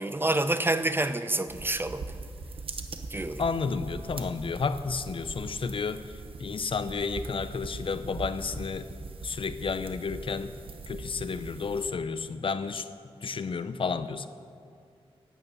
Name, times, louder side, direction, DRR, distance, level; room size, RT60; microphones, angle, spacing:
voice 1, 0.0-2.0 3.1-3.4, right 2 dB, 20° right, 10 dB, 0.6 m, -27 dB
sound 1, 1.5-11.9, right 3 dB, 65° right, 0.9 m, -41 dB
voice 2, 3.4-6.1 6.4-8.9 9.2-10.5 10.9-12.9 13.2-14.3, left 5 dB, 60° left, 12 dB, 0.5 m, -31 dB
11.5 x 9.3 x 8.2 m, 2.3 s
wide cardioid pair, 120°, 10 cm